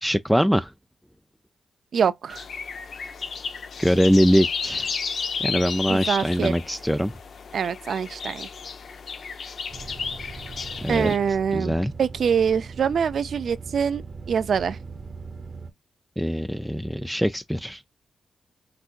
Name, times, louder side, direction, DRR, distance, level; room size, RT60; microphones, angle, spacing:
voice 1, 0.0-0.7 3.8-4.9 5.4-7.1 10.8-11.1 11.5-11.9 16.2-17.8, equal, ahead, 0.4 m, -22 dB
voice 2, 1.9-2.4 5.9-6.5 7.5-8.5 10.9-14.0 14.3-14.8, right 7 dB, 70° right, 0.5 m, -24 dB
sound 1, 2.3-11.2, left 5 dB, 65° left, 0.7 m, -33 dB
sound 2, 9.7-15.7, right 4 dB, 50° right, 0.9 m, -39 dB
5.9 x 2.7 x 2.5 m
cardioid pair, 75°, 0 cm